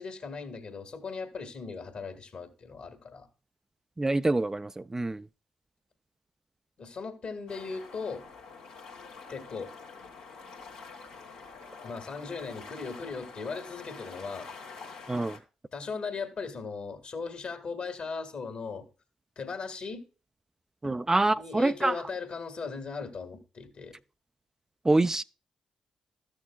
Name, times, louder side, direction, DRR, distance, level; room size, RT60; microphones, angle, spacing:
voice 1, 0.0-3.3 6.8-8.3 9.3-9.7 11.8-14.5 15.7-18.9 19.4-20.0 20.8-21.0 21.3-24.0, left 4 dB, 55° left, 1.8 m, -38 dB
voice 2, 4.0-5.3 15.1-15.4 20.8-22.0 24.8-25.2, right 2 dB, 20° right, 0.3 m, -26 dB
sound 1, 7.5-15.4, left 4 dB, 85° left, 1.4 m, -47 dB
13.5 x 6.4 x 2.3 m
hypercardioid pair, 40°, 2 cm